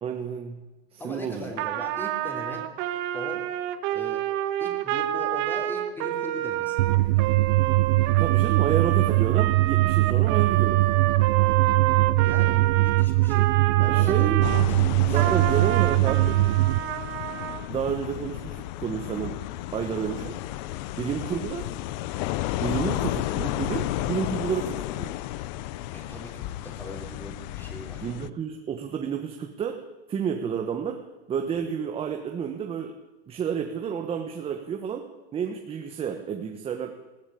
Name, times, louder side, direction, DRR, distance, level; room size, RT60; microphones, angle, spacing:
voice 1, 0.0-0.6 0.9-1.5 8.2-10.9 13.9-14.5 15.1-16.4 17.7-19.4 19.7-20.4 21.0-21.7 22.6-25.1 28.0-31.0 31.3-33.0 33.3-35.1 35.3-37.0, right 7 dB, 15° right, 4 dB, 1.4 m, -30 dB
voice 2, 1.0-2.7 3.1-3.5 3.9-4.3 4.6-7.1 8.3-8.5 10.2-10.3 11.4-11.6 12.2-13.5 13.8-14.5 14.8-15.5 25.9-28.1, left 1 dB, 5° left, 3 dB, 3.2 m, -40 dB
Trumpet, 1.6-14.7 15.1-17.6, right 14 dB, 40° right, 1.6 m, -29 dB
sound 1, 6.8-16.8, right 19 dB, 55° right, 0.7 m, -21 dB
sound 2, 14.4-28.3, left 15 dB, 45° left, 0.8 m, -32 dB
20.5 x 15.5 x 8.6 m, 1.2 s
supercardioid pair, 155°, 32 cm